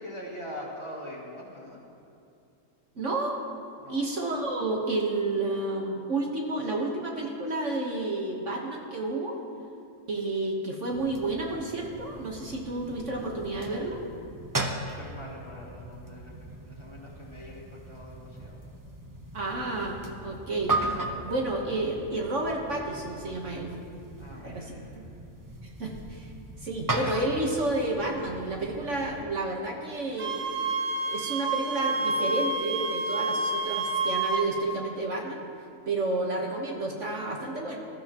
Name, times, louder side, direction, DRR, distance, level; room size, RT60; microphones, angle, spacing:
voice 1, 0.0-1.8 3.8-4.1 14.5-18.6 24.2-24.9, left 1 dB, 20° left, -4 dB, 2.1 m, -43 dB
voice 2, 2.9-3.4 3.9-9.4 10.1-14.0 19.3-20.7 21.3-23.7 24.4-24.7 25.8-26.3 26.6-30.6 31.0-35.4 35.9-37.8, right 2 dB, 55° right, -1 dB, 1.6 m, -30 dB
sound 1, 10.9-29.2, right 2 dB, 20° right, 0.7 m, -37 dB
Wind instrument woodwind instrument, 30.2-34.5, right 3 dB, 75° right, 1.8 m, -29 dB
21.0 x 13.0 x 3.0 m, 2.5 s
omnidirectional pair, 1.6 m